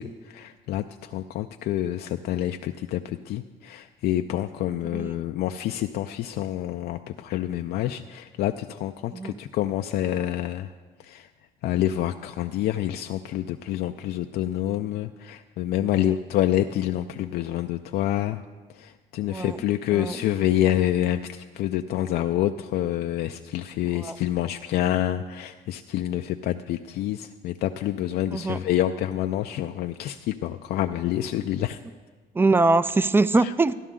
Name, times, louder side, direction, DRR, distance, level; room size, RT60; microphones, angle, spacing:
voice 1, 0.0-10.7 11.0-11.3 11.6-18.4 18.8-31.8 33.4-33.5, left 12 dB, 70° left, 6 dB, 0.4 m, -27 dB
voice 2, 15.8-16.1 19.2-19.6 19.9-20.2 23.9-24.2 28.3-28.6 32.3-33.7, right 3 dB, 15° right, 16 dB, 0.3 m, -23 dB
13.5 x 11.0 x 3.7 m, 1.4 s
cardioid pair, 110°, 17 cm